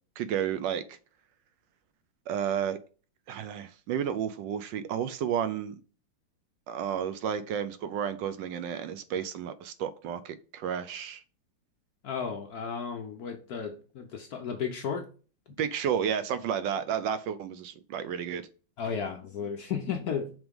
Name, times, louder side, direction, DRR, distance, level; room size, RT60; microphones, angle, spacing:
voice 1, 0.2-1.0 2.3-2.8 3.3-5.7 6.7-11.2 15.6-18.5, right 8 dB, 75° right, 1.1 m, -32 dB
voice 2, 12.0-15.1 18.8-20.3, left 6 dB, 70° left, 0.9 m, -34 dB
5.9 x 3.7 x 5.2 m
omnidirectional pair, 2.4 m